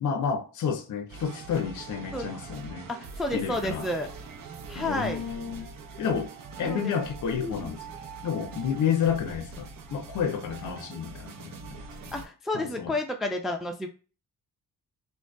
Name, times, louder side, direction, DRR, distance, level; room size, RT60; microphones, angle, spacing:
voice 1, 0.0-2.9 3.3-3.9 4.7-5.7 6.0-6.3 6.6-7.8 8.2-12.1 12.5-12.9, left 7 dB, 50° left, 0.6 m, -30 dB
sound 1, 1.1-12.3, right 4 dB, 60° right, 0.7 m, -43 dB
voice 2, 2.9-4.1 4.7-5.2 6.6-6.9 7.4-7.7 12.1-13.9, left 1 dB, ahead, 0.4 m, -31 dB
2.5 x 2.2 x 2.2 m
supercardioid pair, 45°, 39 cm